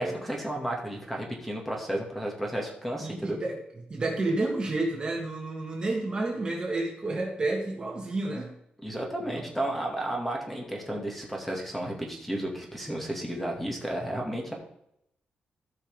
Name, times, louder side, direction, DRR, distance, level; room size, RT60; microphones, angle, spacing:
voice 1, 0.0-3.4 8.8-14.5, right 1 dB, 5° left, 0 dB, 2.2 m, -32 dB
voice 2, 3.0-3.6 3.9-8.5 9.2-9.5, right 2 dB, 30° right, 0 dB, 1.9 m, -30 dB
14.5 x 5.8 x 3.7 m, 0.76 s
wide cardioid pair, 130°, 3 cm